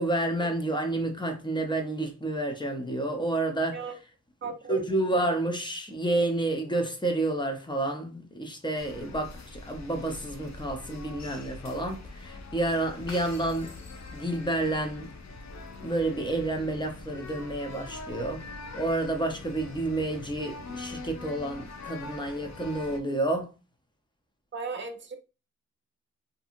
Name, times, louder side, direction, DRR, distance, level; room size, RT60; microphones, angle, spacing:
voice 1, 0.0-3.8 4.7-13.7 14.1-15.1 15.8-18.4 18.7-23.5, right 2 dB, 15° left, 0.6 m, -29 dB
voice 2, 4.4-4.8 19.2-19.4 24.5-25.2, right 4 dB, 40° right, 0.5 m, -36 dB
sound 1, 8.8-23.0, left 3 dB, 60° left, 0.5 m, -43 dB
2.7 x 2.5 x 2.5 m
wide cardioid pair, 90°, 32 cm